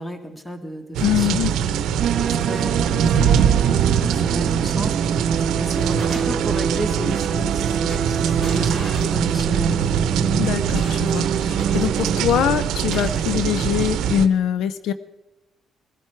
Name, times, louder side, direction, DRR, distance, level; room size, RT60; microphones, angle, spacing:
voice 1, 0.0-1.4 2.1-3.5 3.8-9.9, equal, 10° left, 6 dB, 1.9 m, -33 dB
sound 1, 0.9-14.3, right 8 dB, 85° right, 0.8 m, -22 dB
voice 2, 1.0-1.5 10.4-14.9, left 9 dB, 80° left, 13 dB, 0.6 m, -23 dB
sound 2, 2.0-12.2, right 7 dB, 55° right, 0.5 m, -26 dB
sound 3, 4.7-5.1 5.5-6.6 7.4-7.6 7.9-9.7 10.6-12.0 12.9-13.9, left 1 dB, 35° left, 3.8 m, -39 dB
20.0 x 12.0 x 4.5 m, 1.0 s
cardioid pair, 90°, 0 cm